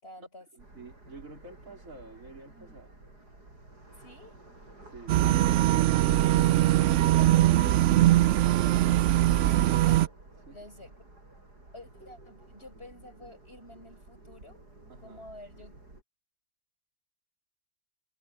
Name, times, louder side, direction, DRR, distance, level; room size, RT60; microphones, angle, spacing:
voice 1, 0.0-0.5 4.0-4.4 6.5-7.8 8.3-9.0 9.3-10.1 10.5-11.0 11.7-14.6 15.0-15.8, left 1 dB, 40° left, 7.1 m, -50 dB
voice 2, 0.5-2.9 4.9-5.3 10.5-10.7 14.9-15.3, right 3 dB, 55° right, 4.1 m, -49 dB
sound 1, 0.6-16.0, right 2 dB, 85° right, 7.5 m, -52 dB
sound 2, 5.1-10.1, right 14 dB, 70° right, 0.7 m, -22 dB
omnidirectional pair, 1.7 m